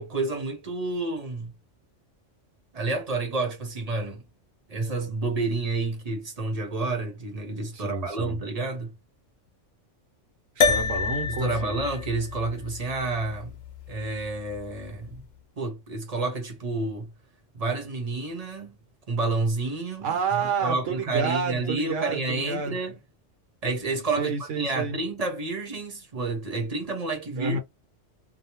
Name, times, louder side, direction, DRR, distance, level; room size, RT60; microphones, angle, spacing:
voice 1, 0.0-1.5 2.7-4.2 4.7-8.9 11.3-13.6 13.9-15.2 15.6-17.1 17.5-18.8 19.1-20.2 20.6-23.0 23.6-27.6, right 3 dB, 35° right, 0.8 m, -29 dB
voice 2, 7.7-8.4 10.6-11.8 20.0-22.7 24.2-25.0 27.4-27.6, right 4 dB, 80° right, 1.2 m, -29 dB
sound 1, 10.6-15.2, left 5 dB, 65° left, 0.8 m, -29 dB
2.7 x 2.0 x 3.0 m
omnidirectional pair, 1.3 m